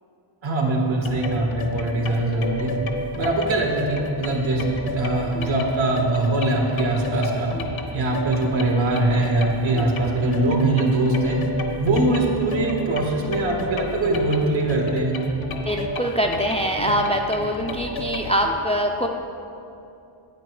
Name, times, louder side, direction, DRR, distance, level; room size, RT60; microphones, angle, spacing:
voice 1, 0.4-2.7 3.2-7.5 7.9-11.4 11.8-15.2, right 2 dB, 65° right, 0 dB, 1.8 m, -22 dB
sound 1, 1.0-18.5, left 1 dB, 70° left, 0.9 m, -31 dB
voice 2, 15.7-19.1, equal, 15° left, 2 dB, 0.4 m, -23 dB
9.1 x 8.7 x 4.8 m, 2.7 s
wide cardioid pair, 115°, 48 cm